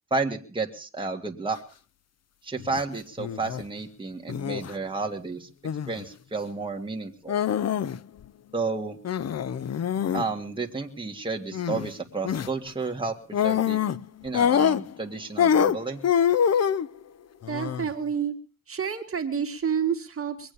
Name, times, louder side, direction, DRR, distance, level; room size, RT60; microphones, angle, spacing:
voice 1, 0.1-1.6 2.4-5.5 5.9-7.4 8.5-9.0 10.1-13.1 13.4-13.8 14.2-16.0, right 3 dB, 15° right, 2 dB, 2.1 m, -31 dB
sound 1, 2.6-2.8 3.2-3.6 4.3-4.7 5.6-6.0 7.3-8.2 9.0-10.3 11.5-11.9 12.2-12.5 13.3-14.0 14.3-15.1 15.4-16.9 17.4-17.9, left 8 dB, 55° left, 0.7 m, -25 dB
voice 2, 17.5-18.4 18.7-20.5, right 7 dB, 45° right, 5 dB, 2.0 m, -29 dB
22.5 x 8.8 x 6.8 m, 0.38 s
cardioid pair, 95°, 32 cm